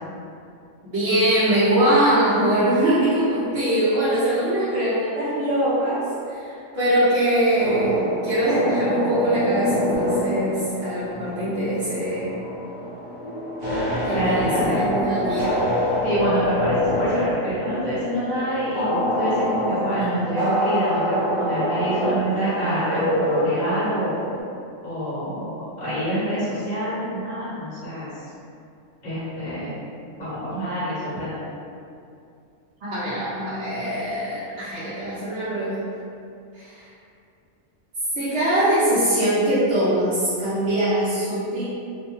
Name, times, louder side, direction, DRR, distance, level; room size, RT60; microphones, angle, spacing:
voice 1, 0.8-12.4 14.0-15.5 32.8-35.7 36.5-36.9 38.1-41.6, right 1 dB, 60° right, -14 dB, 1.0 m, -22 dB
Spooky Ambient, 7.5-24.4, equal, 30° right, 0.6 m, -25 dB
voice 2, 14.1-14.8 16.0-24.1 24.8-28.1 29.0-29.8 30.2-31.4, right 1 dB, 45° left, -10 dB, 0.7 m, -26 dB
2.7 x 2.1 x 3.0 m, 2.5 s
omnidirectional pair, 1.4 m